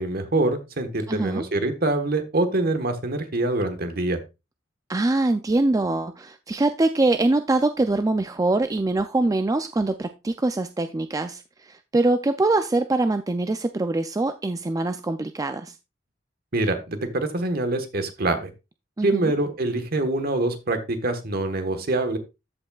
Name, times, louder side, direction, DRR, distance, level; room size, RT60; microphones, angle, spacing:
voice 1, 0.0-4.2 16.5-18.5 19.0-22.2, right 2 dB, 55° right, 8 dB, 1.3 m, -25 dB
voice 2, 1.1-1.5 4.9-15.7 19.0-19.3, right 2 dB, 20° right, 9 dB, 0.4 m, -23 dB
14.0 x 5.3 x 2.3 m, 0.25 s
head